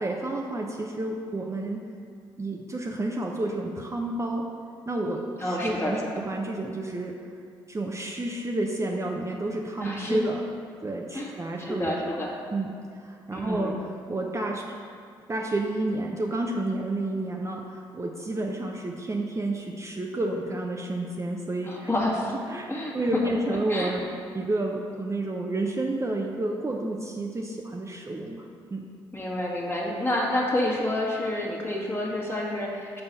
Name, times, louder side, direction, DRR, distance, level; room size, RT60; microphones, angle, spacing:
voice 1, 0.0-1.8 2.4-4.5 4.9-7.2 7.7-10.4 10.8-11.9 12.5-13.7 14.1-14.8 15.3-21.9 22.5-28.9, right 2 dB, 25° right, 0 dB, 0.6 m, -30 dB
voice 2, 5.4-6.2 9.8-10.2 11.1-11.3 11.6-12.3 13.3-13.8 21.6-22.3 22.7-23.2 23.7-23.9 29.1-33.0, left 1 dB, 20° left, -2 dB, 1.6 m, -29 dB
5.5 x 4.0 x 5.8 m, 2.3 s
hypercardioid pair, 50°, 11 cm